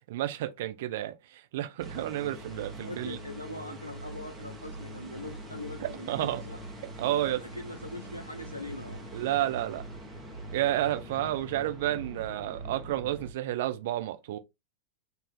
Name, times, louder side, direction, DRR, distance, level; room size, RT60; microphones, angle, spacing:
voice 1, 0.1-3.2 6.1-6.4 7.0-7.4 9.1-9.8 10.5-14.4, right 13 dB, 55° right, 0.6 m, -31 dB
sound 1, 1.8-13.3, right 1 dB, 10° right, 1.3 m, -43 dB
voice 2, 2.8-6.6 7.4-9.1 11.0-11.1, left 1 dB, 85° left, 0.4 m, -42 dB
4.3 x 2.7 x 3.3 m
figure-of-eight pair, 90°, 0 cm